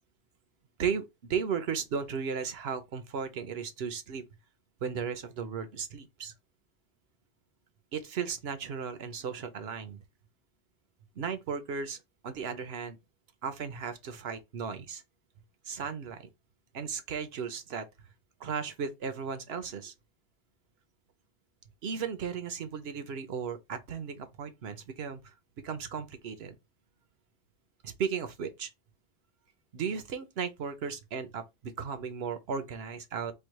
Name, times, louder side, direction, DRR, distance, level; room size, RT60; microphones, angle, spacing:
voice 1, 0.8-4.2 4.8-6.3 7.9-10.0 11.2-12.0 12.2-13.0 13.4-15.0 15.7-16.3 16.7-17.9 18.4-19.9 21.8-25.3 25.6-26.5 27.8-28.7 29.7-33.3, right 6 dB, 70° right, 1.0 m, -35 dB
4.5 x 2.4 x 4.6 m
omnidirectional pair, 1.1 m